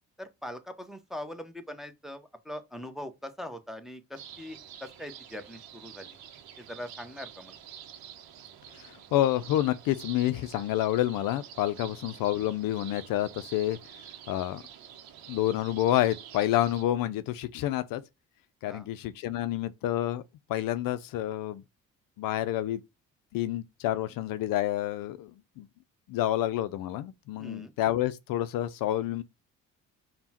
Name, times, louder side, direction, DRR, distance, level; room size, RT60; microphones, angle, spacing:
voice 1, 0.2-6.1 6.6-7.6 18.6-18.9 27.4-27.7, left 1 dB, ahead, 0.7 m, -42 dB
sound 1, 4.1-16.8, right 10 dB, 70° right, 0.8 m, -48 dB
voice 2, 8.7-13.8 14.3-14.6 15.3-18.0 18.6-20.2 20.5-21.6 22.2-22.8 23.3-25.7 26.1-29.2, left 13 dB, 60° left, 0.5 m, -28 dB
5.3 x 2.2 x 2.8 m
hypercardioid pair, 55°, 37 cm